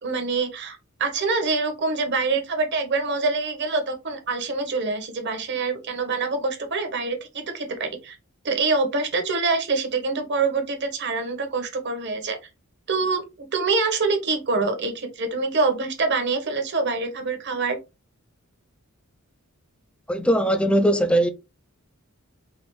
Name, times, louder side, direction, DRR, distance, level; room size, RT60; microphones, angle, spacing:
voice 1, 0.0-8.2 8.4-12.4 12.9-17.8, right 3 dB, 55° right, 1.1 m, -25 dB
voice 2, 20.1-21.3, right 1 dB, 5° left, 0.4 m, -20 dB
4.9 x 2.5 x 3.1 m
head